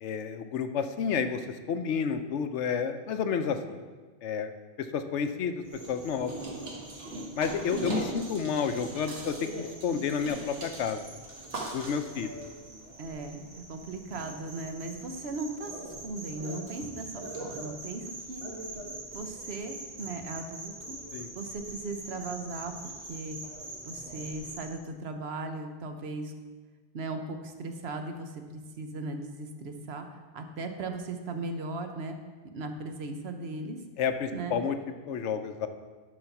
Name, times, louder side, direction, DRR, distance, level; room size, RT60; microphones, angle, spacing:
voice 1, 0.0-1.4 1.7-3.8 4.2-4.5 4.8-6.3 7.4-11.0 11.7-12.3 21.1-21.3 34.0-34.8 35.1-35.7, left 6 dB, 85° left, 9 dB, 1.0 m, -30 dB
sound 1, 5.6-24.7, right 2 dB, 90° right, 1.8 m, -41 dB
voice 2, 13.0-18.4 19.1-21.0 21.3-22.7 23.1-23.4 23.8-26.3 26.9-32.2 32.5-33.8 34.3-34.6, right 3 dB, 65° right, 6 dB, 1.1 m, -38 dB
11.0 x 4.2 x 5.9 m, 1.4 s
omnidirectional pair, 1.2 m